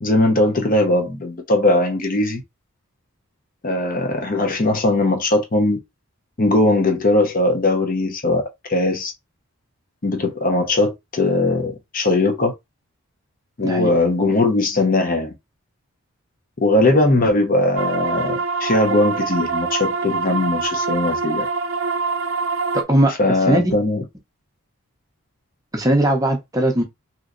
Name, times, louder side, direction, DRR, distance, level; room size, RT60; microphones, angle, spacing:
voice 1, 0.0-2.4 3.6-5.8 6.4-8.4 8.7-9.1 10.0-12.5 13.6-15.3 16.6-21.5 23.2-24.0, left 2 dB, 40° left, 0.6 m, -19 dB
sound 1, 17.8-22.8, right 4 dB, 55° right, 0.5 m, -24 dB
voice 2, 22.7-23.1 23.5-23.7 25.7-26.8, right 1 dB, 15° right, 0.6 m, -18 dB
3.1 x 2.9 x 2.5 m
head